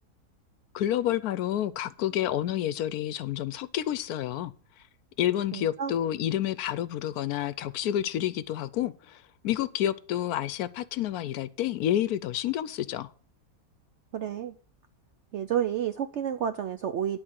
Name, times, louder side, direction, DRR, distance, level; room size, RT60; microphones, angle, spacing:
voice 1, 0.7-4.5 5.2-13.1, left 11 dB, 70° left, 1.0 m, -29 dB
voice 2, 5.5-5.9 14.1-14.5 15.3-17.2, right 9 dB, 70° right, 0.7 m, -30 dB
11.0 x 4.4 x 7.5 m
omnidirectional pair, 1.7 m